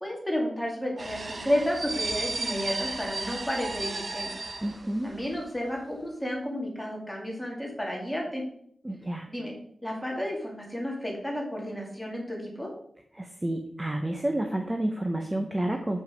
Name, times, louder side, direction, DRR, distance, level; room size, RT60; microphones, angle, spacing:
voice 1, 0.0-4.3 5.0-8.4 9.3-9.5 9.8-12.7, equal, 5° left, -1 dB, 2.3 m, -32 dB
sound 1, 1.0-5.4 5.6-5.8, right 3 dB, 40° right, 0.9 m, -34 dB
voice 2, 4.6-5.1 8.8-9.3 13.1-16.0, right 1 dB, 15° right, 4 dB, 0.7 m, -30 dB
7.7 x 5.9 x 5.1 m, 0.66 s
wide cardioid pair, 160°, 0 cm